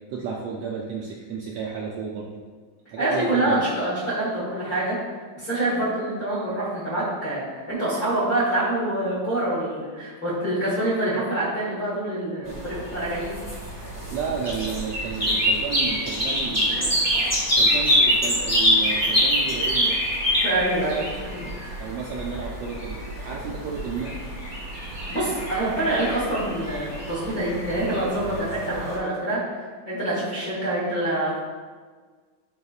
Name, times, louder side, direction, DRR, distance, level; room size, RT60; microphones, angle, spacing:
voice 1, 0.1-2.4 2.9-3.6 14.1-17.1 17.5-20.0 21.8-24.1, right 5 dB, 80° right, -3 dB, 1.5 m, -32 dB
voice 2, 3.0-5.0 5.3-13.3 20.4-21.9 25.1-31.4, right 1 dB, 45° left, -7 dB, 1.3 m, -26 dB
sound 1, 12.5-29.0, equal, 15° left, 0.5 m, -26 dB
9.7 x 4.1 x 2.4 m, 1.5 s
omnidirectional pair, 3.5 m